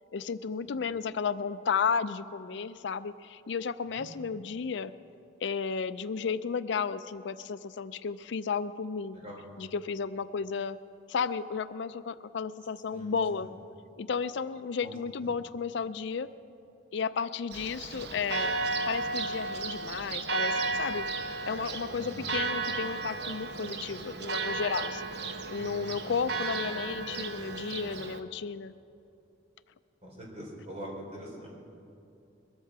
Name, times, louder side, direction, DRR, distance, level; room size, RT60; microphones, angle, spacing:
voice 1, 0.1-4.9 5.4-9.2 9.6-10.8 11.1-13.5 14.0-16.3 16.9-18.5 18.9-21.1 21.5-25.1 25.5-28.7, left 5 dB, 70° left, 13 dB, 0.4 m, -33 dB
voice 2, 12.9-13.5 14.8-14.9 15.2-15.3 21.9-22.3 26.0-26.1 30.0-31.5, equal, 35° right, -3 dB, 3.5 m, -44 dB
Church bell, 17.5-28.2, right 3 dB, 60° right, 0.9 m, -34 dB
21.5 x 13.5 x 4.8 m, 2.7 s
head